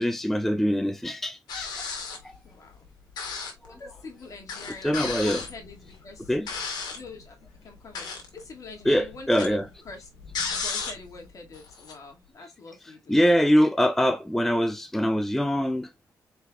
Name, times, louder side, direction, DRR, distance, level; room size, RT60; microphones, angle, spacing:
voice 1, 0.0-1.7 3.7-3.8 4.8-5.4 6.3-6.5 8.9-9.6 13.1-15.9, equal, 5° left, 0.4 m, -23 dB
sound 1, 1.5-2.3 3.2-3.7 4.0-4.1 4.5-7.1 7.8-8.4 8.7-11.2 11.5-11.9, left 5 dB, 80° left, 1.9 m, -34 dB
voice 2, 2.4-2.9 3.4-6.4 6.9-7.4 7.6-13.2, left 3 dB, 50° left, 2.2 m, -45 dB
4.7 x 4.6 x 2.4 m
cardioid pair, 90°, 7 cm